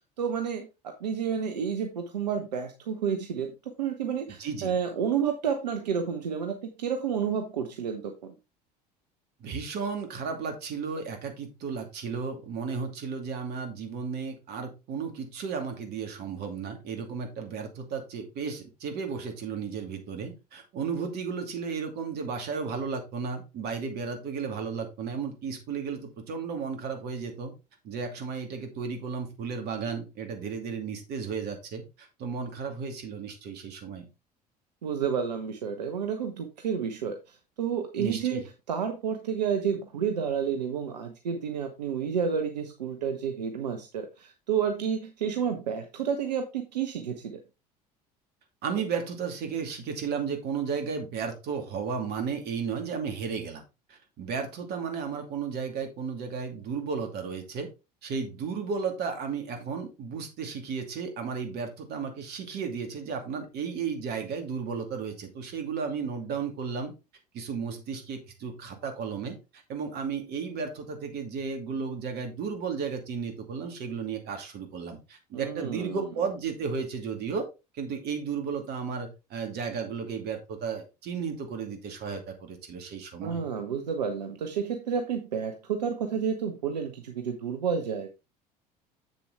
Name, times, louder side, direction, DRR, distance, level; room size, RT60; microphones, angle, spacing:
voice 1, 0.2-8.4 34.8-38.4 38.7-47.4 75.3-76.1 83.2-88.1, right 7 dB, 75° right, 6 dB, 1.0 m, -30 dB
voice 2, 4.4-4.7 9.4-27.5 27.8-34.1 38.0-38.4 48.6-53.6 53.9-57.7 58.0-66.9 67.3-77.5 77.7-83.4, right 5 dB, 50° right, 5 dB, 2.5 m, -34 dB
7.8 x 6.8 x 3.4 m, 0.26 s
figure-of-eight pair, 65°, 21 cm